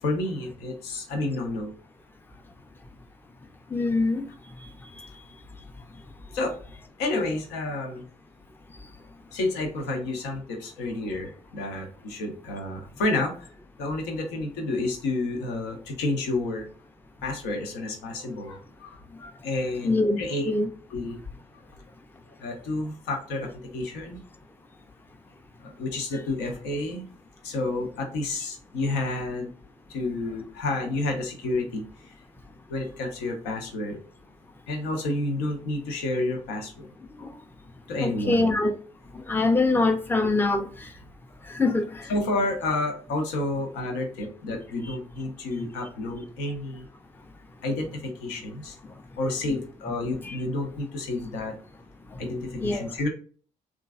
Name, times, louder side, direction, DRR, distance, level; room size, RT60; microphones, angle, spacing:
voice 1, 0.0-1.7 6.3-6.6 7.0-8.1 9.3-13.5 13.8-16.7 17.2-19.0 19.4-20.5 20.9-21.2 21.5-21.6 22.4-24.2 25.6-27.1 27.4-29.5 29.9-32.1 32.7-34.0 34.7-36.9 37.9-38.5 42.1-46.8 47.6-48.8 49.2-51.6 52.2-53.1, left 2 dB, 75° left, 0.8 m, -30 dB
voice 2, 3.7-4.2 5.0-5.1 19.8-20.7 37.2-37.3 38.0-38.7 39.1-40.9 41.5-42.1 44.8-44.9 45.6-45.7 50.2-50.4 52.6-52.8, left 3 dB, 10° left, 0.5 m, -24 dB
3.0 x 2.4 x 2.4 m
hypercardioid pair, 45°, 18 cm